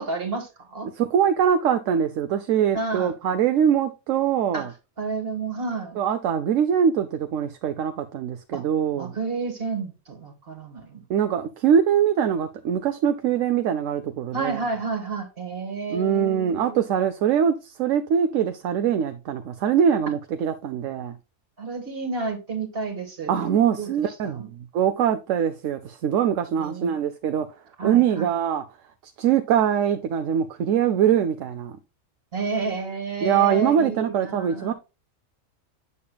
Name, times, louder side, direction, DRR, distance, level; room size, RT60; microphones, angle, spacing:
voice 1, 0.0-0.9 2.7-3.1 4.5-4.7 5.0-6.0 8.5-8.6 9.0-11.0 14.3-16.8 21.6-23.4 23.8-23.9 24.2-24.5 26.5-26.9 27.8-28.3 32.3-34.7, right 3 dB, 45° right, 1.8 m, -30 dB
voice 2, 1.0-4.7 6.0-9.1 11.1-14.6 15.9-21.1 23.3-27.5 27.8-28.6 29.2-31.7 33.2-34.7, right 8 dB, 75° right, 1.0 m, -23 dB
8.6 x 6.9 x 2.3 m
omnidirectional pair, 1.3 m